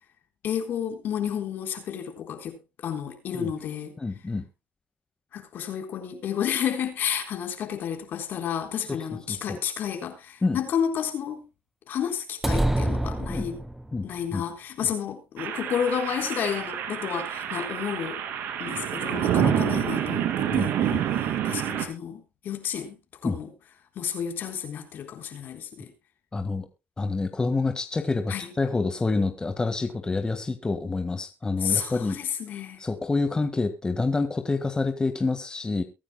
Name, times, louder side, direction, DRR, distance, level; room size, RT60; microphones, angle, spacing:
voice 1, 0.4-3.9 5.3-11.4 11.9-13.6 14.0-18.2 18.6-23.0 23.2-23.5 24.0-25.9 28.3-28.5 31.6-32.8, left 8 dB, 65° left, 3.9 m, -31 dB
voice 2, 4.0-4.4 8.9-9.0 9.3-9.6 10.4-10.6 13.3-13.5 13.9-14.4 19.4-19.6 20.5-21.0 23.2-23.4 26.3-26.7 27.0-32.2 32.8-35.8, left 3 dB, 20° left, 1.7 m, -27 dB
sound 1, 12.4-14.0, right 1 dB, 10° right, 1.1 m, -26 dB
sound 2, 15.4-21.9, right 10 dB, 75° right, 2.5 m, -27 dB
23.0 x 9.9 x 2.2 m
cardioid pair, 90°, 4 cm